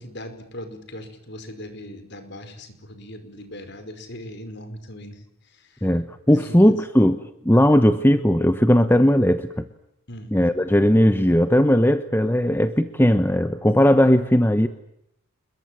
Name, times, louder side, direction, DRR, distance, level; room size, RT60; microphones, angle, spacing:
voice 1, 0.0-5.9 6.3-6.7 10.1-10.3, left 1 dB, 50° left, 8 dB, 5.1 m, -39 dB
voice 2, 5.8-9.6 10.3-14.7, equal, 10° left, 10 dB, 0.9 m, -18 dB
28.0 x 22.5 x 7.7 m, 0.78 s
head